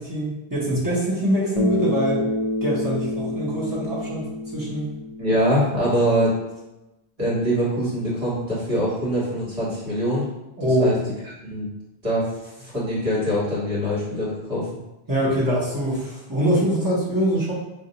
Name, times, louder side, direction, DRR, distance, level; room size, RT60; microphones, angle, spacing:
voice 1, 0.0-2.3 2.6-4.2 4.5-4.9 10.6-11.0 15.1-17.5, equal, 20° right, -7 dB, 0.9 m, -23 dB
Bass guitar, 1.6-5.9, left 2 dB, 45° left, 0.4 m, -28 dB
voice 2, 5.2-6.3 7.2-10.3 10.8-10.9 11.4-11.7 12.0-14.7, equal, 35° right, -8 dB, 1.4 m, -23 dB
2.6 x 2.3 x 3.9 m, 0.97 s
omnidirectional pair, 1.1 m